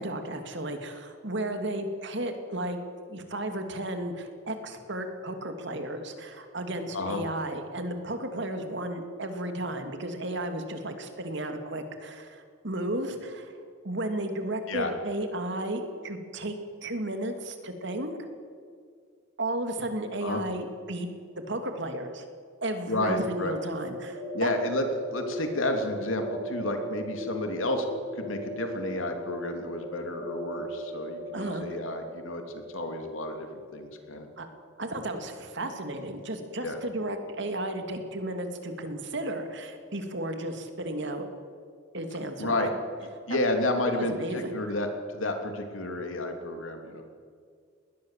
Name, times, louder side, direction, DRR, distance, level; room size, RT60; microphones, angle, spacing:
voice 1, 0.0-2.8 3.1-13.6 13.8-18.2 19.4-21.1 21.4-22.2 22.6-24.5 31.3-31.6 34.4-34.5 34.8-41.3 41.9-42.7 43.3-43.4 43.9-44.6, right 1 dB, 60° right, 6 dB, 2.6 m, -34 dB
voice 2, 22.9-23.5 24.3-27.8 28.1-34.3 36.6-36.8 42.4-42.7 43.3-44.9 45.1-47.0, left 1 dB, 80° left, 5 dB, 3.1 m, -31 dB
sound 1, 23.2-34.9, left 1 dB, 15° left, 6.6 m, -39 dB
20.5 x 19.5 x 7.5 m, 2.1 s
head